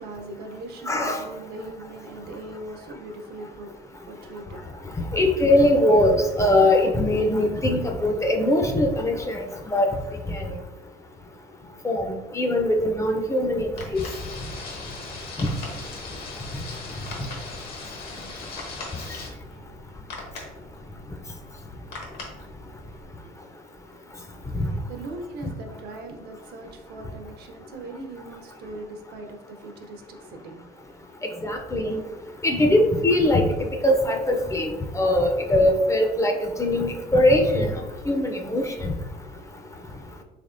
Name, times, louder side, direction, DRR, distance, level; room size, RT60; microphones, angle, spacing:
voice 1, 0.0-5.0 22.6-23.5 24.4-31.2, right 2 dB, 70° right, 4 dB, 0.6 m, -40 dB
voice 2, 0.9-1.2 5.1-9.5 9.7-10.0 10.3-10.5 11.8-12.1 12.3-13.7 15.4-15.5 31.4-32.0 32.4-33.5 33.8-37.7 38.1-38.7, left 1 dB, 15° left, 3 dB, 0.4 m, -21 dB
sound 1, 13.4-23.0, left 2 dB, 80° left, 1.0 m, -42 dB
sound 2, 13.9-19.3, left 3 dB, 60° left, 0.8 m, -39 dB
3.5 x 3.3 x 2.5 m, 1.1 s
cardioid pair, 110°, 17 cm